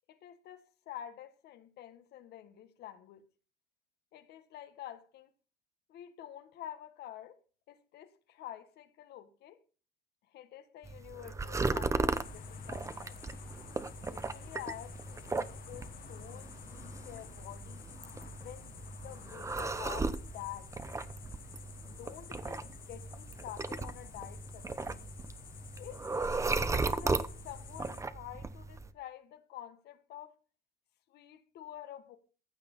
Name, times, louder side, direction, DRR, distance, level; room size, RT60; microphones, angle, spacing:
voice 1, 0.1-3.3 4.1-5.3 5.9-7.4 7.7-9.6 10.3-13.2 14.1-17.9 18.4-20.7 21.8-25.1 25.8-26.0 26.3-30.3 31.1-32.2, left 12 dB, 75° left, 1.5 m, -48 dB
sound 1, 10.8-28.9, right 3 dB, 15° right, 0.9 m, -37 dB
sound 2, 12.1-28.0, left 9 dB, 60° left, 1.5 m, -51 dB
15.0 x 7.0 x 5.4 m
cardioid pair, 110°, 17 cm